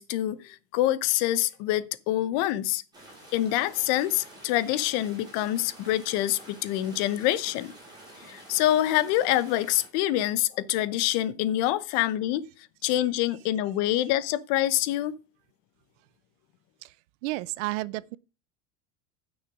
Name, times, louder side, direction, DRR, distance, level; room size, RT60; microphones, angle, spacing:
voice 1, 0.0-2.8 3.3-7.7 8.3-12.4 12.8-15.1, left 14 dB, 50° left, 0.9 m, -26 dB
sound 1, 2.9-9.9, right 1 dB, 10° right, 5.2 m, -49 dB
voice 2, 17.2-18.2, right 20 dB, 70° right, 0.6 m, -31 dB
9.8 x 6.4 x 6.0 m
cardioid pair, 160°, 38 cm